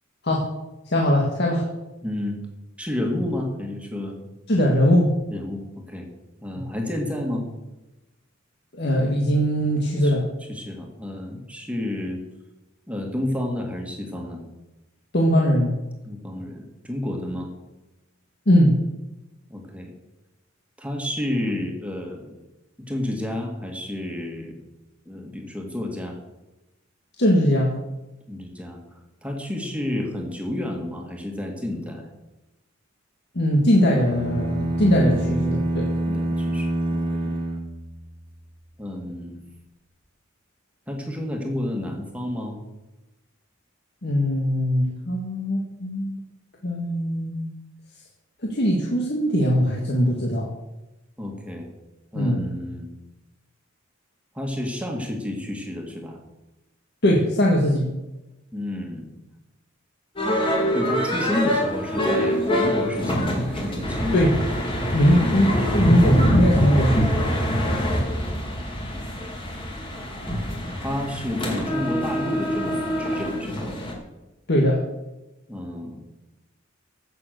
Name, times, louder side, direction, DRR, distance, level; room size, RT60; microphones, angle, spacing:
voice 1, 0.9-1.7 4.5-5.1 8.8-10.3 15.1-15.7 18.5-18.8 27.2-27.7 33.4-35.8 44.0-46.2 46.6-47.5 48.4-50.5 52.1-52.5 57.0-57.9 64.1-64.4 64.9-67.1 74.5-74.8, equal, 55° left, -1 dB, 1.8 m, -20 dB
voice 2, 2.0-2.4 2.8-4.2 5.3-6.1 6.4-7.5 10.0-10.2 10.5-12.2 12.9-14.4 16.0-17.5 19.5-19.9 20.8-22.4 22.8-24.6 25.1-26.2 28.3-32.1 36.1-37.4 38.8-39.4 40.9-42.6 51.2-51.7 52.1-52.9 54.3-56.2 58.5-59.2 60.7-64.4 65.1-65.7 68.1-68.3 68.9-69.1 70.8-72.7 73.0-73.7 75.5-76.1, left 1 dB, 5° right, 1 dB, 2.0 m, -30 dB
sound 1, 34.0-38.3, right 1 dB, 25° right, 1.9 m, -26 dB
sound 2, 60.2-73.9, equal, 25° left, 2.4 m, -24 dB
16.0 x 6.9 x 6.6 m, 1.0 s
head